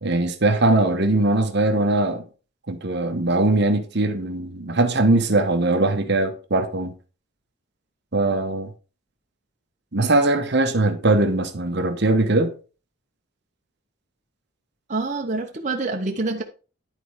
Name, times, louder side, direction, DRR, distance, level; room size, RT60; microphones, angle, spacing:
voice 1, 0.0-2.2 2.7-6.9 8.1-8.7 9.9-12.5, right 2 dB, 55° right, 1.1 m, -20 dB
voice 2, 14.9-16.4, right 3 dB, 35° right, 1.0 m, -26 dB
11.0 x 4.2 x 4.8 m
head